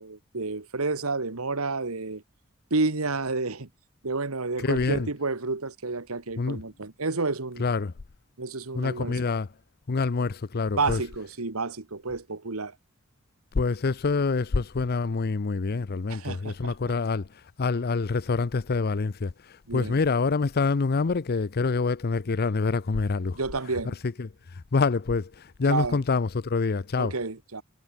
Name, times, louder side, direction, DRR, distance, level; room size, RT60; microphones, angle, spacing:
voice 1, 0.0-2.2 2.7-3.7 4.0-7.6 8.4-9.2 10.8-12.7 16.1-16.9 19.7-20.0 23.3-23.9 25.7-26.0 27.0-27.6, right 3 dB, 85° right, 1.7 m, -30 dB
voice 2, 4.6-5.1 6.4-6.6 7.6-7.9 8.7-9.5 9.9-11.0 13.5-17.3 17.6-23.4 23.8-24.3 24.7-27.1, left 4 dB, 45° left, 0.6 m, -26 dB
head